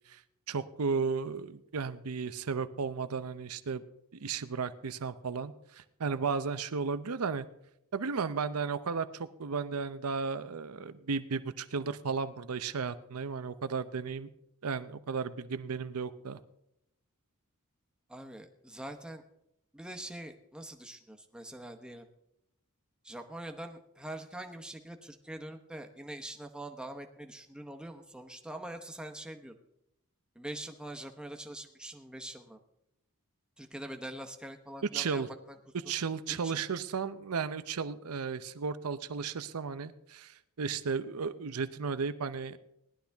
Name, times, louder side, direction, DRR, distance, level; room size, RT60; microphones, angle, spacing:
voice 1, 0.5-3.8 4.1-7.5 7.9-14.3 14.6-16.4 34.9-35.3 35.9-42.6, right 5 dB, 90° right, 12 dB, 0.7 m, -34 dB
voice 2, 18.1-19.2 19.7-22.1 23.0-29.5 30.3-32.6 33.6-35.6 36.4-36.6, right 1 dB, 5° right, 4 dB, 1.0 m, -44 dB
18.5 x 11.5 x 3.5 m, 0.79 s
head